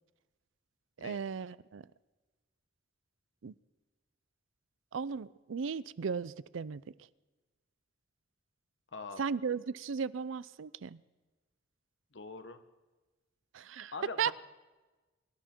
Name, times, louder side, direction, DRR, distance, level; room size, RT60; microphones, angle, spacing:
voice 1, 1.0-1.8 3.4-3.5 4.9-6.8 9.2-11.0 13.5-13.9 14.2-14.3, right 6 dB, 90° right, 19 dB, 0.5 m, -36 dB
voice 2, 8.9-9.3 12.1-12.6 13.9-14.3, left 4 dB, 65° left, 9 dB, 1.2 m, -43 dB
24.5 x 12.5 x 4.5 m, 1.2 s
head